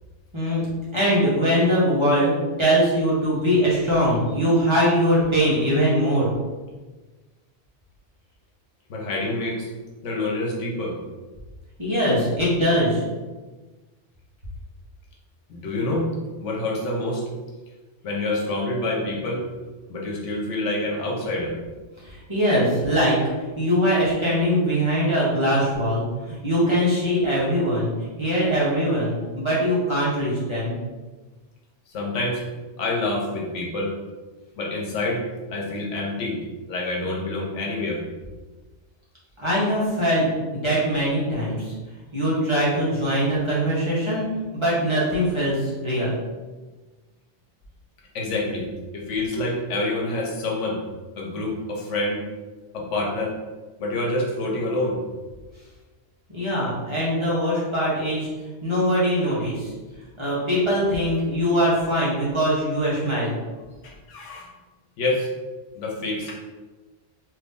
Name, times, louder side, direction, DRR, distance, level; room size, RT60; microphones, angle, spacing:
voice 1, 0.9-2.3 2.6-6.3 11.8-13.0 22.3-23.2 23.6-27.9 28.2-30.7 39.4-40.2 40.5-41.7 42.1-44.3 44.5-46.2 56.3-58.3 58.6-59.7 60.2-63.3, equal, 25° right, -8 dB, 1.0 m, -22 dB
voice 2, 8.9-9.7 10.0-11.0 15.5-16.1 16.4-17.2 18.0-19.4 19.9-21.6 31.9-32.4 32.8-33.9 34.6-35.2 35.5-36.4 36.7-38.0 48.1-48.7 48.9-50.8 51.2-52.2 52.7-53.4 53.8-55.0 63.8-64.5 65.0-65.3 65.7-66.3, left 2 dB, 85° left, -2 dB, 1.1 m, -27 dB
3.0 x 2.6 x 3.6 m, 1.3 s
omnidirectional pair, 1.2 m